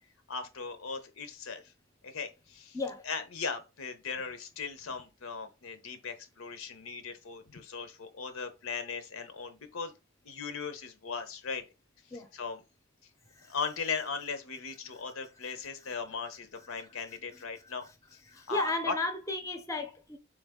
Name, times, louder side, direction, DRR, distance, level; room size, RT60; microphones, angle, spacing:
voice 1, 0.3-1.6 2.0-2.8 3.1-9.9 10.2-11.6 12.3-12.6 13.5-17.9 18.1-18.9, left 5 dB, 80° left, 0.7 m, -38 dB
voice 2, 18.3-20.2, left 2 dB, 15° left, 0.6 m, -34 dB
3.5 x 3.2 x 3.5 m
head